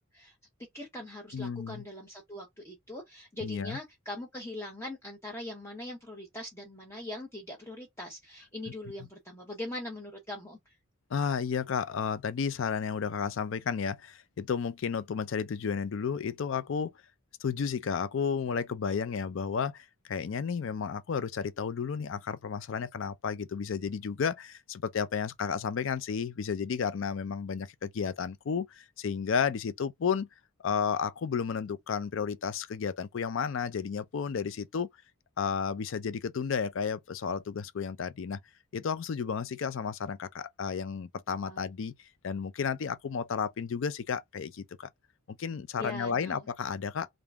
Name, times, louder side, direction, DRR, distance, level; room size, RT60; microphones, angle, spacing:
voice 1, 0.7-10.8 41.4-41.6 45.8-46.4, left 1 dB, 10° left, 0.7 m, -41 dB
voice 2, 1.3-1.8 3.4-3.8 11.1-16.9 17.4-30.3 30.6-34.9 35.4-38.4 38.7-44.9 45.3-47.1, left 6 dB, 60° left, 0.4 m, -32 dB
3.5 x 2.6 x 3.4 m
head